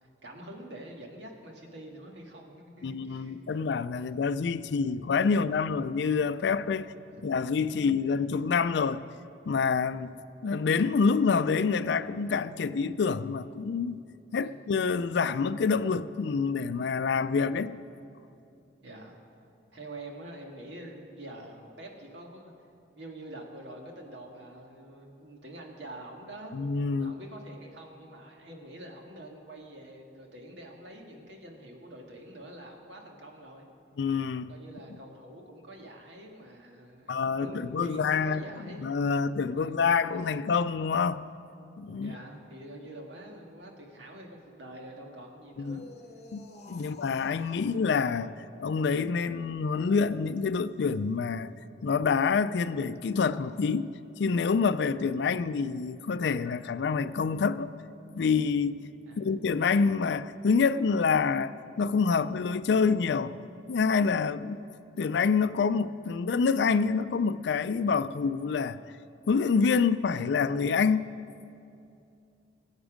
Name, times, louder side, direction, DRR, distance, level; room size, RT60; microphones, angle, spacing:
voice 1, 0.0-3.6 5.3-5.4 6.8-7.4 14.4-14.6 18.8-19.2 19.7-22.5 23.0-26.6 26.9-33.7 34.5-38.8 39.5-40.0 42.0-45.9 46.8-46.9 59.1-59.3, right 1 dB, 75° right, 1.8 m, -46 dB
voice 2, 2.8-6.9 7.2-9.0 9.5-10.2 10.4-14.0 14.3-17.7 26.5-27.1 34.0-34.5 37.1-38.4 38.8-41.2 41.8-42.2 45.6-45.8 46.3-48.3 48.6-51.5 51.8-53.9 54.2-57.7 58.1-58.8 59.2-63.3 63.7-64.6 65.0-68.8 69.3-71.1, left 5 dB, 70° left, 0.4 m, -27 dB
sound 1, 45.5-47.8 49.7-51.5 53.1-53.6, left 1 dB, 40° left, 1.2 m, -48 dB
19.5 x 8.1 x 5.1 m
head